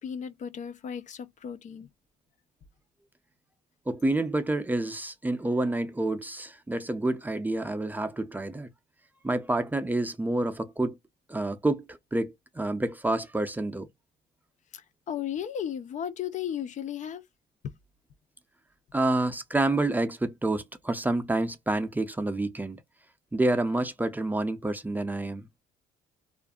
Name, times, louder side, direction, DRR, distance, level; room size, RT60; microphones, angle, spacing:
voice 1, 0.0-1.9 14.7-17.2, left 9 dB, 45° left, 0.5 m, -35 dB
voice 2, 3.9-8.7 9.2-11.0 11.3-13.9 18.9-22.8 23.3-25.5, right 2 dB, 10° right, 0.5 m, -28 dB
2.5 x 2.5 x 2.3 m
cardioid pair, 110°, 17 cm